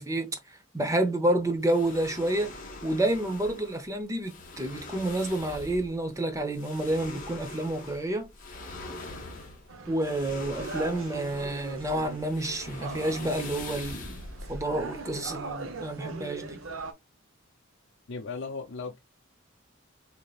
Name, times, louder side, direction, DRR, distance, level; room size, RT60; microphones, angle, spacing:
voice 1, 0.0-2.6 2.8-8.3 9.9-14.2 14.5-16.6, right 1 dB, 15° right, 0.6 m, -29 dB
sound 1, 1.6-15.5, left 2 dB, 40° left, 1.1 m, -43 dB
sound 2, 9.7-16.9, right 3 dB, 70° right, 0.7 m, -41 dB
voice 2, 18.1-19.0, left 4 dB, 60° left, 0.6 m, -36 dB
5.0 x 2.8 x 2.3 m
head